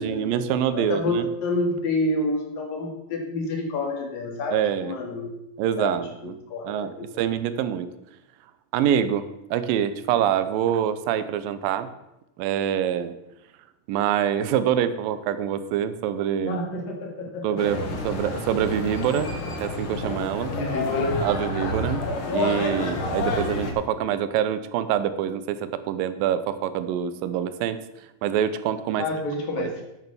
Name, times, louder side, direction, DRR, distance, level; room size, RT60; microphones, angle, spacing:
voice 1, 0.0-1.3 4.5-4.9 5.6-6.3 6.6-7.9 8.7-11.9 12.4-13.1 13.9-16.6 17.4-19.3 19.6-20.5 21.2-22.0 22.3-27.8 28.2-29.0 29.6-29.7, right 9 dB, 85° right, 12 dB, 2.5 m, -25 dB
voice 2, 0.7-5.4 5.8-7.2 16.5-17.5 17.8-17.9 20.5-21.2 29.0-29.7, left 2 dB, 80° left, 1 dB, 4.0 m, -28 dB
sound 1, 17.6-23.7, left 2 dB, 45° left, 2.0 m, -29 dB
9.1 x 9.1 x 6.9 m, 0.91 s
omnidirectional pair, 3.9 m